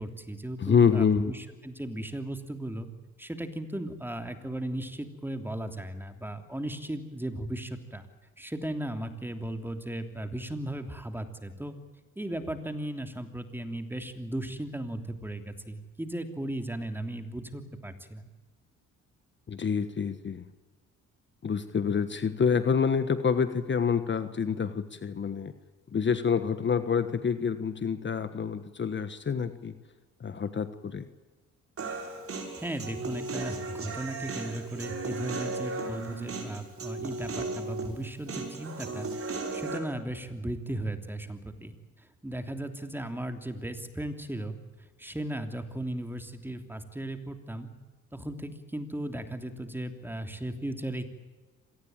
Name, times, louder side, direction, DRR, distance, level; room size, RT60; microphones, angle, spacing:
voice 1, 0.0-2.9 3.2-8.1 8.4-11.7 12.2-18.2 32.6-41.7 42.2-47.7 48.1-51.1, right 1 dB, 5° right, 7 dB, 3.1 m, -36 dB
voice 2, 0.6-1.3 19.5-20.5 21.4-25.5 25.9-29.7 30.2-31.1, left 6 dB, 40° left, 11 dB, 1.5 m, -27 dB
Human voice, 31.8-39.8, right 3 dB, 50° right, 6.6 m, -36 dB
26.0 x 19.0 x 9.1 m, 1.3 s
cardioid pair, 90°, 30 cm